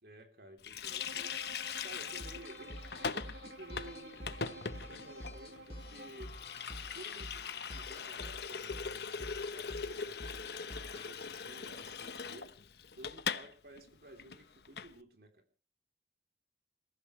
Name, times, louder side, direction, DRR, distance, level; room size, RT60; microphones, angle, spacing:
voice 1, 0.0-1.4 1.8-2.8 3.1-6.4 6.9-10.2 10.8-12.6 12.9-15.4, right 1 dB, 60° right, 4 dB, 3.4 m, -54 dB
Water tap faucet, 0.6-13.5 13.8-13.9 14.2-14.9, left 6 dB, 65° left, 0.9 m, -41 dB
Bowed string instrument, 0.9-6.3, right 1 dB, 80° right, 3.7 m, -52 dB
sound 1, 2.2-11.1, left 1 dB, 35° left, 2.3 m, -49 dB
28.5 x 15.0 x 3.2 m, 0.38 s
head